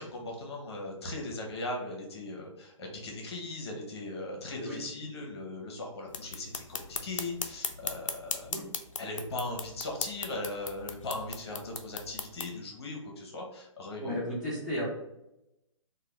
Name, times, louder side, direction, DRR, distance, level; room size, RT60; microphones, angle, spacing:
voice 1, 0.0-8.5 9.0-14.1, left 2 dB, 50° left, 0 dB, 0.8 m, -39 dB
sound 1, 6.1-12.5, left 5 dB, 70° left, 0.4 m, -38 dB
voice 2, 14.0-14.8, equal, ahead, -8 dB, 0.9 m, -34 dB
2.8 x 2.2 x 3.3 m, 0.87 s
figure-of-eight pair, 130°, 17 cm